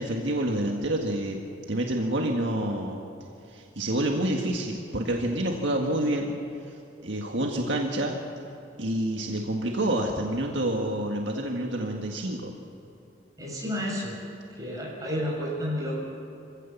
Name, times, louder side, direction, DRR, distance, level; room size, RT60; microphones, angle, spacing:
voice 1, 0.0-1.4 1.7-3.0 3.5-6.4 6.7-8.2 8.8-12.5, right 1 dB, 70° right, 1 dB, 1.7 m, -28 dB
voice 2, 13.4-14.2 14.6-16.0, equal, 20° right, -4 dB, 7.3 m, -31 dB
26.5 x 16.0 x 7.3 m, 2.7 s
head